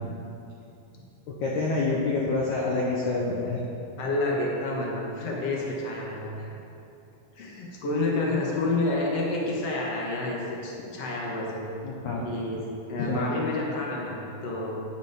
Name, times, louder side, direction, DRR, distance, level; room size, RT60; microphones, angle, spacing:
voice 1, 1.3-3.6 11.8-12.2 13.0-13.3, left 3 dB, 90° left, -3 dB, 1.7 m, -27 dB
voice 2, 4.0-6.5 7.3-11.7 12.2-12.6 12.9-14.8, left 2 dB, 60° left, -3 dB, 1.7 m, -29 dB
10.5 x 7.3 x 4.9 m, 2.7 s
omnidirectional pair, 4.9 m